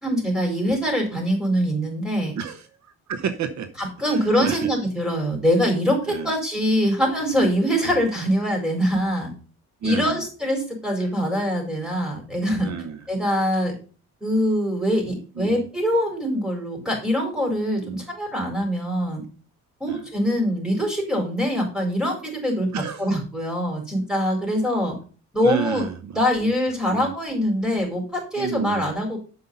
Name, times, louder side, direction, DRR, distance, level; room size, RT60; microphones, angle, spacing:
voice 1, 0.0-2.4 3.8-9.3 9.8-12.7 13.1-13.7 14.2-19.2 19.8-24.9 25.3-25.8 26.1-29.2, equal, ahead, 2 dB, 4.6 m, -23 dB
voice 2, 2.3-3.7 4.1-4.7 6.1-6.3 7.8-7.9 9.8-10.2 12.6-13.0 15.4-15.6 17.8-18.0 19.9-20.0 22.7-23.1 25.4-26.5 26.9-27.1 28.4-28.9, right 7 dB, 65° right, 10 dB, 1.0 m, -31 dB
7.8 x 5.7 x 5.5 m, 0.36 s
cardioid pair, 90°, 30 cm